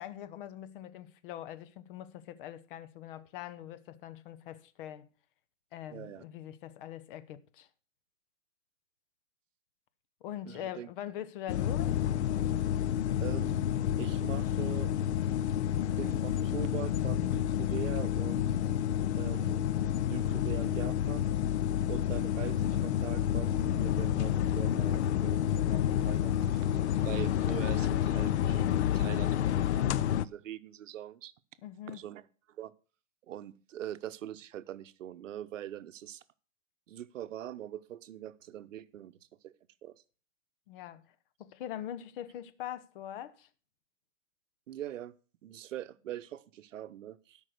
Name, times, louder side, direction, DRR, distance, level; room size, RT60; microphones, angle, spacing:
voice 1, 0.0-5.1 5.7-7.7 10.2-12.1 31.6-32.1 40.7-43.5, left 11 dB, 45° left, 1.0 m, -43 dB
voice 2, 5.9-6.2 10.5-10.9 13.2-13.6 14.0-14.9 16.0-18.5 19.1-19.7 20.1-21.3 21.9-31.3 31.9-32.2 32.6-32.7 33.3-36.2 36.9-39.1 39.4-39.5 39.8-40.0 44.7-45.1 45.4-47.4, right 11 dB, 70° right, 0.9 m, -43 dB
sound 1, 11.5-30.3, left 10 dB, 60° left, 0.6 m, -29 dB
12.5 x 5.4 x 6.6 m
hypercardioid pair, 145°, 39 cm